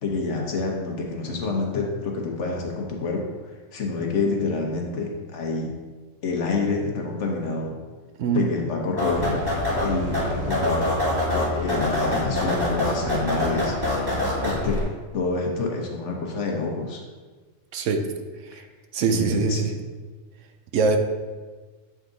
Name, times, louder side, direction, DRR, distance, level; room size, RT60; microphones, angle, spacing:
voice 1, 0.0-5.7 6.2-7.8 8.3-9.4 9.7-13.7 14.4-14.8 15.1-17.0 18.5-18.7 19.1-19.8, left 3 dB, 65° left, 0 dB, 1.3 m, -28 dB
sound 1, 9.0-14.8, left 1 dB, 20° right, 1.6 m, -25 dB
voice 2, 17.7-18.1 18.5-18.6 18.9-19.7 20.7-21.0, right 4 dB, 75° right, 6 dB, 1.0 m, -22 dB
7.9 x 3.7 x 3.9 m, 1.4 s
omnidirectional pair, 1.4 m